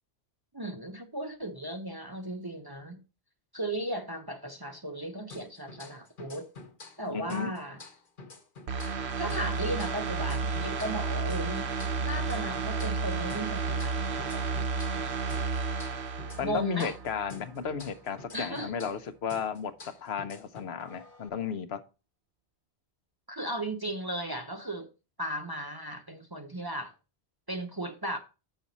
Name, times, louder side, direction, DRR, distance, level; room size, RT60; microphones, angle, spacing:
voice 1, 0.5-3.0 3.5-6.5 7.0-7.8 9.2-14.6 14.9-15.2 16.4-17.0 18.3-18.7 23.3-24.9 25.2-26.9 27.5-28.2, right 1 dB, 25° right, 0.7 m, -36 dB
sound 1, 5.3-7.0 7.3-11.0 11.3-15.0 15.3-19.0 19.3-21.3, left 3 dB, 50° left, 1.3 m, -49 dB
voice 2, 7.1-7.5 16.4-21.8, left 7 dB, 70° left, 1.0 m, -34 dB
sound 2, 8.7-17.3 17.7-17.8, right 4 dB, 70° right, 1.1 m, -32 dB
7.3 x 6.3 x 4.0 m
omnidirectional pair, 1.1 m